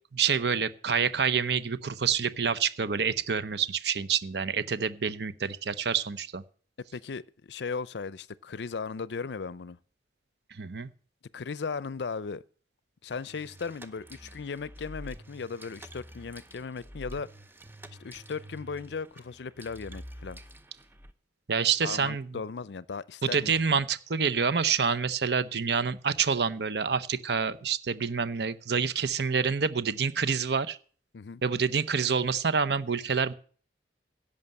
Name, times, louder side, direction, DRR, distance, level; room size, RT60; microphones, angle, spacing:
voice 1, 0.1-6.4 10.5-10.9 21.5-22.3 23.2-30.8 31.4-33.3, right 6 dB, 65° right, 0.8 m, -27 dB
voice 2, 6.9-9.8 11.3-12.4 13.0-17.3 18.0-20.4 21.8-23.8 31.1-31.4, left 5 dB, 75° left, 0.5 m, -37 dB
sound 1, 13.1-21.1, equal, 10° right, 0.7 m, -48 dB
11.0 x 6.7 x 8.8 m
head